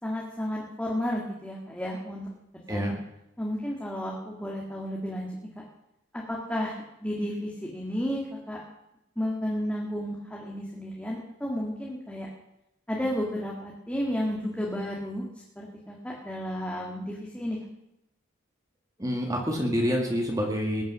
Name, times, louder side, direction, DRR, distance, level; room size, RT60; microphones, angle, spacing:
voice 1, 0.0-2.3 2.5-3.0 3.4-5.3 6.1-6.7 7.0-8.6 9.2-12.3 12.9-15.3 15.6-17.6, equal, 5° left, -3 dB, 1.8 m, -32 dB
voice 2, 19.0-20.8, equal, 15° right, 0 dB, 2.1 m, -27 dB
20.5 x 9.3 x 6.1 m, 0.84 s
head